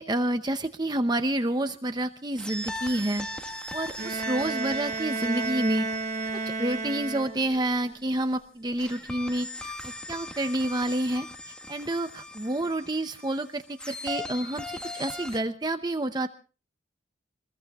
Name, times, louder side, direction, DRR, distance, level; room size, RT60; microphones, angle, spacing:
voice 1, 0.0-3.3 3.7-5.9 6.3-9.7 10.1-16.3, right 1 dB, 20° right, 8 dB, 0.8 m, -29 dB
sound 1, 2.4-8.0 8.8-15.4, left 1 dB, 5° left, 1.9 m, -40 dB
Bowed string instrument, 4.0-7.7, right 3 dB, 40° right, 2.0 m, -32 dB
27.5 x 21.0 x 2.4 m, 0.36 s
head